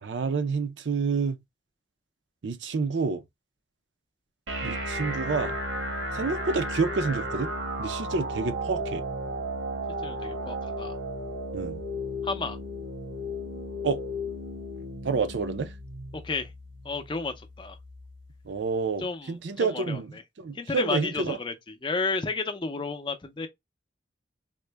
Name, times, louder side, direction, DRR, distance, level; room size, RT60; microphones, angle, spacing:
voice 1, 0.0-1.4 2.4-3.2 4.6-5.6 6.1-7.5 7.8-9.0 11.5-11.8 13.8-14.0 15.0-15.7 18.4-21.4, right 4 dB, 70° right, 0.5 m, -28 dB
sound 1, 4.5-18.4, equal, 90° right, 1.1 m, -34 dB
voice 2, 10.0-10.9 12.2-12.6 16.1-16.5 16.8-17.8 19.0-20.2 20.5-23.5, left 3 dB, 25° left, 0.5 m, -32 dB
3.7 x 2.1 x 3.2 m
head